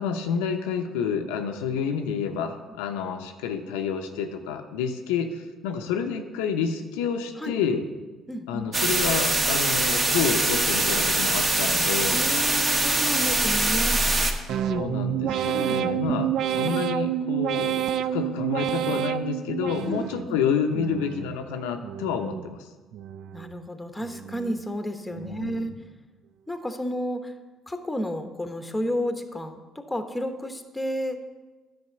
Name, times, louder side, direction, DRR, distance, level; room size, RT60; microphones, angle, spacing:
voice 1, 0.0-7.8 8.5-12.2 14.5-22.7 25.1-25.7, left 6 dB, 90° left, 5 dB, 0.6 m, -29 dB
voice 2, 8.3-8.7 12.1-14.0 15.5-15.7 19.9-20.4 23.3-25.7 26.5-27.3 27.7-31.2, equal, 10° left, 7 dB, 1.0 m, -31 dB
sound 1, 8.7-14.3, right 2 dB, 35° right, 1.2 m, -23 dB
sound 2, 14.5-20.3 20.7-21.4 21.8-22.5 22.9-23.6 24.0-24.6 25.1-25.6, right 10 dB, 65° right, 0.3 m, -29 dB
9.7 x 4.3 x 6.6 m, 1.2 s
supercardioid pair, 65°, 0 cm